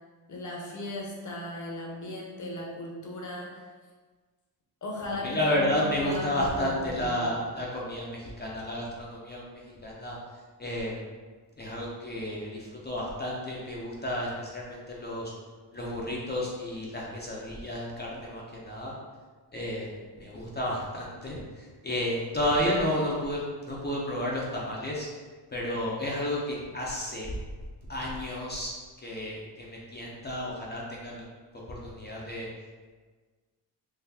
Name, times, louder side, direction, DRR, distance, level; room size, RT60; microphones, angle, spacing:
voice 1, 0.3-3.6 4.8-7.4, left 1 dB, 45° left, -2 dB, 0.9 m, -37 dB
voice 2, 5.2-10.2 10.6-11.0 11.6-15.3 15.7-18.9 19.5-25.1 25.5-27.3 27.9-28.7 29.0-31.3 31.5-32.5, left 1 dB, 25° left, -4 dB, 0.6 m, -32 dB
4.0 x 2.5 x 2.7 m, 1.4 s
cardioid pair, 95°, 42 cm